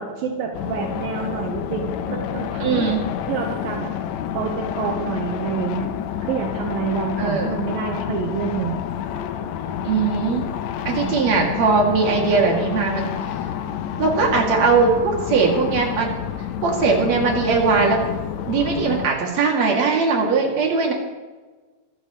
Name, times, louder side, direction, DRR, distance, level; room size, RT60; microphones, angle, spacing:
voice 1, 0.0-3.0 3.3-3.9 4.3-5.9 6.2-8.8 10.8-11.2, right 6 dB, 75° right, 1 dB, 2.9 m, -28 dB
sound 1, 0.5-19.1, left 9 dB, 75° left, 1.7 m, -29 dB
voice 2, 2.6-3.0 7.2-7.6 9.8-10.5 10.9-13.1 14.0-16.1 16.6-18.0 18.5-20.9, right 4 dB, 50° right, -1 dB, 3.7 m, -20 dB
25.0 x 14.5 x 3.2 m, 1.3 s
omnidirectional pair, 4.1 m